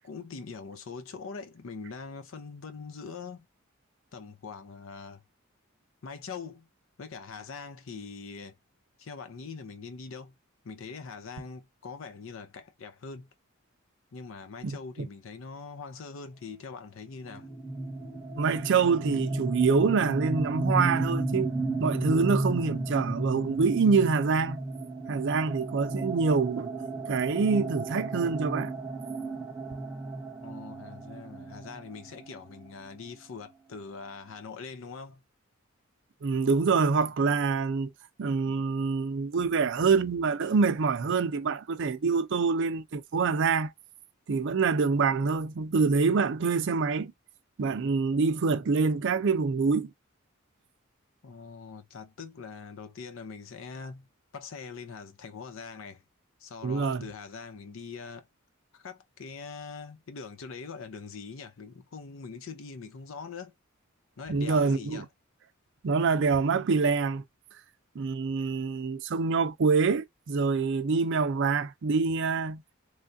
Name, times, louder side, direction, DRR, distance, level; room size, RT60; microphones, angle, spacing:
voice 1, 0.0-3.5 4.1-5.2 6.0-6.7 7.0-8.6 9.0-10.3 10.6-13.3 14.1-17.5 30.4-35.2 51.2-54.1 54.3-56.0 56.4-58.3 58.7-63.5 64.2-65.1, left 5 dB, 65° left, 0.5 m, -42 dB
voice 2, 14.6-15.1 18.4-21.5 21.8-24.6 25.1-26.7 27.1-28.7 36.2-37.9 38.2-43.7 44.3-47.1 47.6-49.9 56.6-57.0 64.3-65.1 65.8-67.2 68.0-72.6, right 4 dB, 60° right, 0.5 m, -26 dB
sound 1, 17.3-32.9, right 2 dB, 10° right, 0.9 m, -33 dB
3.1 x 2.3 x 2.5 m
head